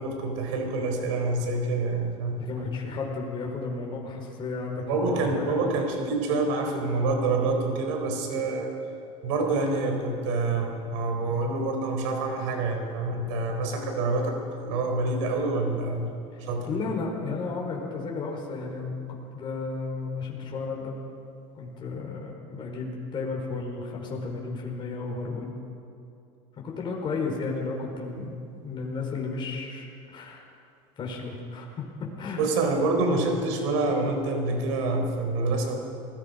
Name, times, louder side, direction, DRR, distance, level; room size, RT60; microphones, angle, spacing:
voice 1, 0.0-2.5 4.8-8.7 9.2-16.1 16.5-16.8 32.4-35.7, right 3 dB, 85° right, 4 dB, 4.1 m, -27 dB
voice 2, 2.4-5.6 16.3-16.4 16.7-21.0 21.5-25.5 26.6-28.4 28.6-30.4 31.0-32.4, left 4 dB, 30° left, -1 dB, 4.8 m, -33 dB
27.0 x 19.0 x 5.4 m, 2.5 s
supercardioid pair, 135°, 15 cm